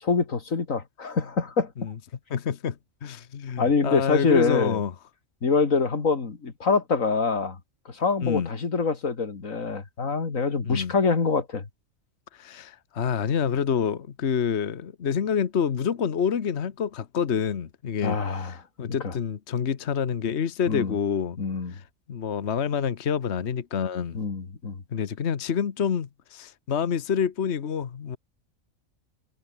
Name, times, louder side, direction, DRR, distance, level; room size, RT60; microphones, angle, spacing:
voice 1, 0.0-1.9 3.6-4.8 5.4-7.6 7.9-11.6 18.0-18.6 19.0-19.1 20.7-21.0 21.4-21.7 24.1-24.8, left 4 dB, 90° left, 2.8 m, -25 dB
voice 2, 2.3-2.8 3.0-4.9 8.2-8.5 10.6-10.9 12.3-21.4 21.7-21.8 22.1-24.2 24.9-28.2, left 7 dB, 55° left, 1.4 m, -27 dB
omnidirectional pair, 1.3 m